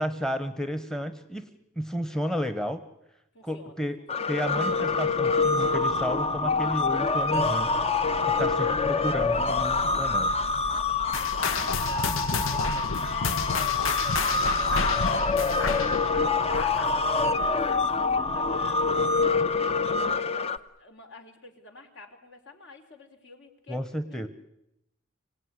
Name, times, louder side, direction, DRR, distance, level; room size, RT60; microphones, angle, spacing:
voice 1, 0.0-1.5 1.8-2.8 3.4-4.0 4.3-7.8 8.2-10.3 23.7-24.3, equal, 5° left, 11 dB, 1.1 m, -32 dB
voice 2, 3.3-3.8 8.6-9.1 10.9-20.5 20.8-24.3, left 2 dB, 65° left, 4 dB, 3.8 m, -47 dB
sound 1, 4.1-20.6, left 4 dB, 30° left, 0.8 m, -26 dB
sound 2, 11.1-18.0 18.3-18.6 19.2-19.3 20.0-20.1, left 5 dB, 85° left, 1.0 m, -30 dB
25.5 x 17.5 x 9.7 m, 0.84 s
head